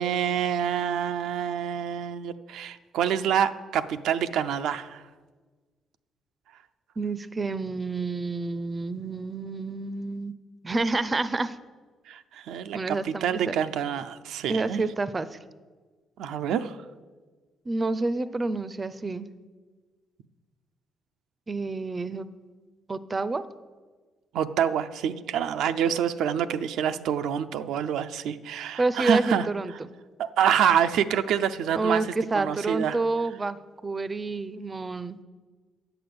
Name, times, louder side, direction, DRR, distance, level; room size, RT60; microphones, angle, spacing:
voice 1, 0.0-5.0 12.1-14.8 16.2-16.8 24.3-29.5 30.2-32.0 32.3-33.0, right 8 dB, 80° right, 10 dB, 0.4 m, -27 dB
voice 2, 7.0-10.3 10.6-11.6 12.7-13.5 14.5-15.4 17.7-19.3 21.5-22.3 22.9-23.4 28.8-29.9 31.8-35.2, right 3 dB, 30° right, 15 dB, 0.5 m, -29 dB
8.4 x 6.8 x 7.9 m, 1.4 s
cardioid pair, 90°, 0 cm